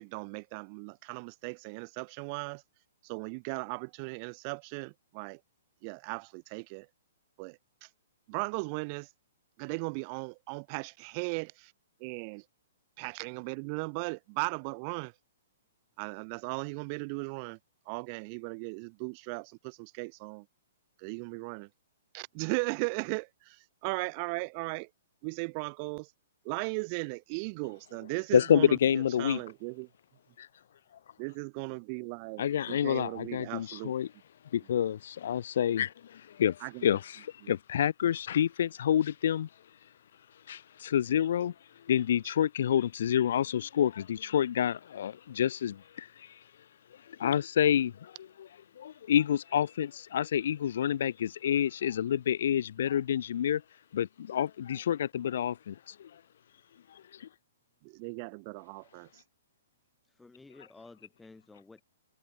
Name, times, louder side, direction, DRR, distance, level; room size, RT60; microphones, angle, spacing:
voice 1, 0.0-2.6 3.0-5.4 5.8-6.9 7.4-7.9 8.3-9.1 9.6-11.7 12.0-12.4 13.0-15.1 16.0-17.6 17.9-20.5 21.0-21.7 22.1-24.9 25.2-26.1 26.4-29.9 31.2-33.9 36.6-36.9 37.4-37.5 57.8-59.2, right 35 dB, 40° right, 2.3 m, -37 dB
voice 2, 28.3-29.4 30.4-30.5 32.4-34.1 34.5-39.5 40.5-41.5 41.9-46.1 47.2-48.1 48.4-48.5 48.8-53.6 53.9-55.7, left 10 dB, 65° left, 2.7 m, -28 dB
voice 3, 31.7-32.4 60.1-61.8, left 3 dB, 5° left, 7.4 m, -54 dB
hypercardioid pair, 135°, 0 cm